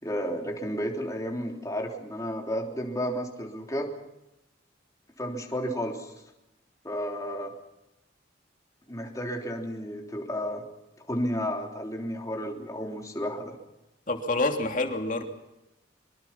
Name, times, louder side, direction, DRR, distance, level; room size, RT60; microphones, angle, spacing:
voice 1, 0.0-3.9 5.2-6.1 6.8-7.5 8.9-10.6 11.0-13.5, equal, 20° left, 1 dB, 3.3 m, -32 dB
voice 2, 14.1-15.2, left 2 dB, 45° left, 4 dB, 3.0 m, -27 dB
24.5 x 24.5 x 5.9 m, 0.93 s
head